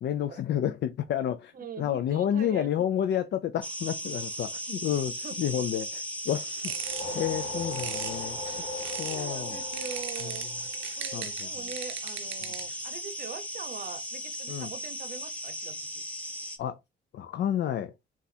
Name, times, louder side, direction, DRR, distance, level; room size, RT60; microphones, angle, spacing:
voice 1, 0.0-6.7 7.1-8.4 9.0-9.6 10.2-10.3 11.1-11.5 12.4-12.5 14.5-14.7 16.6-16.8 17.1-17.9, left 10 dB, 60° left, 0.4 m, -30 dB
voice 2, 1.5-2.7 5.0-5.6 8.7-8.8 9.1-10.5 11.0-16.0, right 6 dB, 45° right, 0.7 m, -43 dB
sound 1, 3.6-16.6, equal, 5° left, 0.9 m, -37 dB
sound 2, 6.3-9.3 9.7-12.9, right 12 dB, 80° right, 0.5 m, -40 dB
sound 3, 6.7-11.3, left 2 dB, 35° left, 0.9 m, -39 dB
3.9 x 2.4 x 4.1 m
cardioid pair, 90°, 20 cm